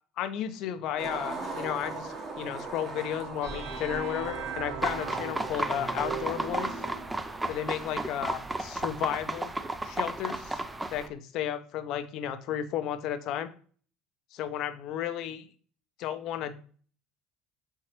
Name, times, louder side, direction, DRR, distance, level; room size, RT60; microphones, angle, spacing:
voice 1, 0.2-6.8 7.5-9.5 9.8-10.6 10.9-13.5 14.3-15.5 16.0-16.6, left 10 dB, 60° left, 10 dB, 0.5 m, -33 dB
Skateboard, 1.0-11.1, right 3 dB, 30° right, 1.0 m, -41 dB
sound 1, 3.4-7.2, right 6 dB, 80° right, 1.2 m, -39 dB
sound 2, 4.8-11.1, right 2 dB, 10° right, 0.3 m, -33 dB
4.5 x 3.8 x 2.9 m, 0.43 s
supercardioid pair, 120°, 0 cm